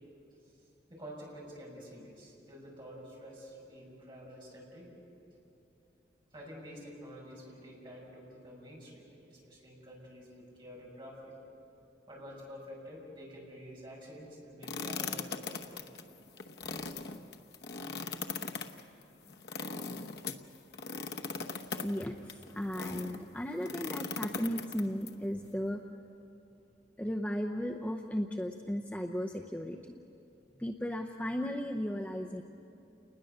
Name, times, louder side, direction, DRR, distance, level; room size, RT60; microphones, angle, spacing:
voice 1, 0.9-4.9 6.3-11.3 12.1-15.7 16.6-16.7, equal, 25° right, -4 dB, 6.4 m, -49 dB
sound 1, 14.6-23.2 23.6-25.1, left 4 dB, 65° left, 1.0 m, -39 dB
voice 2, 21.8-25.8 27.0-30.0 30.6-32.4, equal, 10° left, 2 dB, 0.6 m, -35 dB
29.0 x 20.5 x 6.7 m, 2.8 s
head